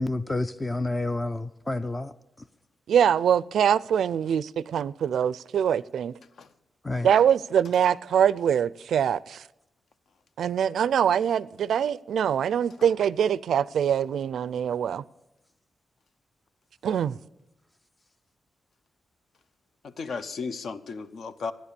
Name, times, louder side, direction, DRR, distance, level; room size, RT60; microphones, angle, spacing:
voice 1, 0.0-2.1 6.8-7.1, left 2 dB, 15° left, 0.4 m, -29 dB
voice 2, 2.9-6.1 7.0-9.4 10.4-15.0 16.8-17.2, right 8 dB, 80° right, 0.4 m, -23 dB
voice 3, 20.0-21.5, left 4 dB, 60° left, 0.8 m, -34 dB
14.0 x 10.5 x 6.8 m
wide cardioid pair, 160°, 0 cm